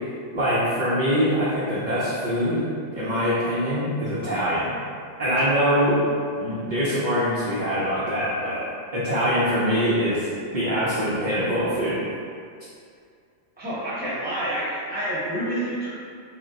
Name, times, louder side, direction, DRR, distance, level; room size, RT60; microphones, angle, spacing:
voice 1, 0.3-2.7 2.9-4.7 5.2-6.0 6.4-8.6 8.9-10.3 10.5-12.0, equal, 50° right, -9 dB, 0.6 m, -23 dB
voice 2, 13.6-15.9, right 1 dB, 10° right, -11 dB, 0.9 m, -28 dB
2.8 x 2.1 x 3.6 m, 2.3 s
omnidirectional pair, 1.3 m